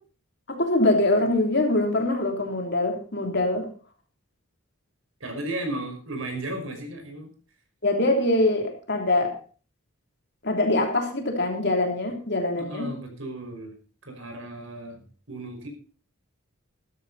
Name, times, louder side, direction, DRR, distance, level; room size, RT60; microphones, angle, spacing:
voice 1, 0.5-3.7 7.8-9.4 10.4-12.9, left 2 dB, 50° left, 3 dB, 3.2 m, -23 dB
voice 2, 5.2-7.3 12.6-13.8 14.1-15.7, right 1 dB, 70° right, 4 dB, 5.4 m, -35 dB
15.0 x 13.0 x 4.2 m, 0.39 s
head